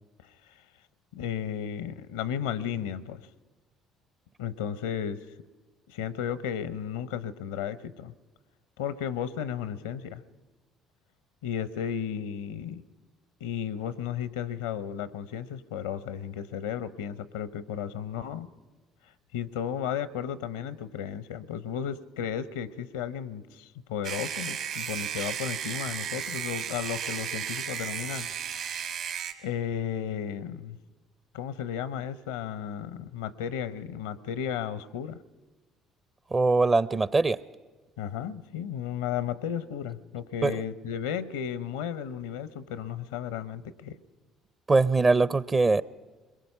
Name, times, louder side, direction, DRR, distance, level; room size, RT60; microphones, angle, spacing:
voice 1, 1.1-3.3 4.4-5.3 5.9-8.1 8.8-10.2 11.4-12.8 13.4-18.5 19.3-28.8 29.4-30.8 31.3-35.2 38.0-44.0, left 8 dB, 80° left, 17 dB, 0.7 m, -34 dB
sound 1, 24.0-29.3, right 8 dB, 65° right, 2.3 m, -34 dB
voice 2, 36.3-37.4 40.4-40.6 44.7-45.8, right 3 dB, 30° right, 17 dB, 0.6 m, -22 dB
22.5 x 22.0 x 5.6 m, 1.3 s
hypercardioid pair, 55°, 0 cm